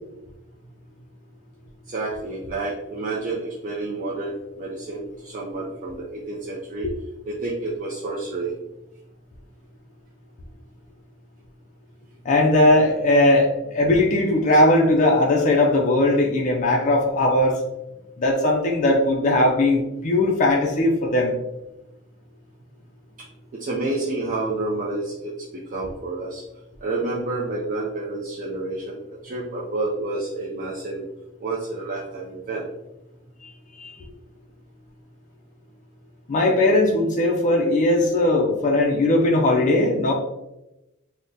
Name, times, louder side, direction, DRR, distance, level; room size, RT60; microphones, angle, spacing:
voice 1, 1.9-6.9 7.2-8.5 23.6-26.4 26.8-31.1 31.4-32.6, right 2 dB, 40° right, -4 dB, 0.4 m, -29 dB
voice 2, 12.2-17.6 18.2-21.3 33.8-33.9 36.3-40.1, left 1 dB, 35° left, -1 dB, 0.4 m, -19 dB
3.6 x 2.1 x 2.6 m, 0.93 s
head